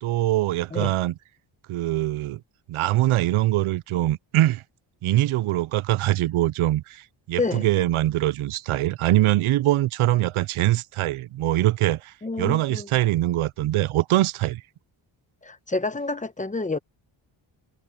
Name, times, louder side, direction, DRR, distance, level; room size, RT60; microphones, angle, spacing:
voice 1, 0.0-1.1 1.7-2.4 2.7-4.6 5.0-14.6, right 15 dB, 90° right, 0.6 m, -23 dB
voice 2, 12.2-12.9 15.4-16.8, left 3 dB, 15° left, 0.9 m, -28 dB
wide cardioid pair, 175°, 48 cm